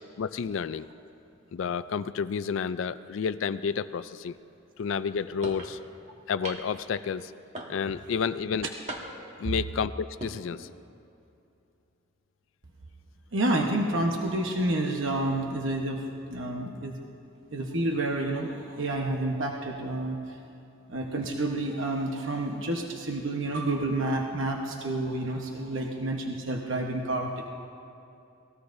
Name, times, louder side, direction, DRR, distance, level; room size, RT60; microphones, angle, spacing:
voice 1, 0.2-0.9 1.5-4.4 4.8-5.8 6.3-7.3 7.7-8.7 9.4-10.7, left 6 dB, 65° left, 13 dB, 0.4 m, -30 dB
sound 1, 5.4-5.7 6.4-6.8 7.5-8.0 8.9-9.4 10.0-10.4, right 1 dB, 35° right, 1.3 m, -39 dB
voice 2, 13.3-17.0 17.5-20.4 20.9-27.5, right 1 dB, 65° right, 1 dB, 1.1 m, -29 dB
28.0 x 19.0 x 2.6 m, 2.7 s
head